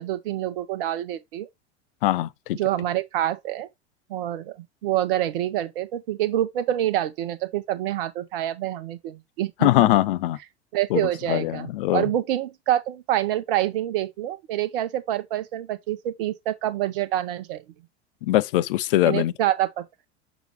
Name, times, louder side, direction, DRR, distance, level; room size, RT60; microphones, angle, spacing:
voice 1, 0.0-1.5 2.5-3.7 4.1-4.6 4.8-9.9 10.7-17.6 19.0-19.8, right 13 dB, 55° right, 0.9 m, -26 dB
voice 2, 2.0-2.6 9.6-10.4 10.9-12.0 18.2-19.3, left 15 dB, 55° left, 0.5 m, -22 dB
6.5 x 6.0 x 3.0 m
figure-of-eight pair, 80°, 34 cm